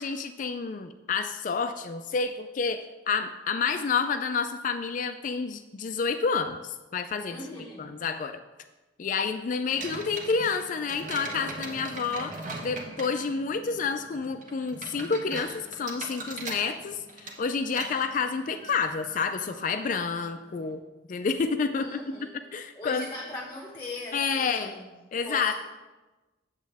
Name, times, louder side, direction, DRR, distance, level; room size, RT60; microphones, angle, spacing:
voice 1, 0.0-7.4 7.8-8.4 9.0-12.3 12.6-20.8 21.1-21.9 22.5-23.1 24.1-24.7 25.1-25.5, left 5 dB, 45° left, 8 dB, 0.4 m, -29 dB
voice 2, 7.3-7.9 21.8-22.3 22.7-25.0 25.2-25.5, left 2 dB, 20° left, -3 dB, 0.9 m, -39 dB
sound 1, 9.7-20.7, right 2 dB, 40° right, 1.1 m, -41 dB
8.3 x 7.4 x 3.4 m, 1.2 s
head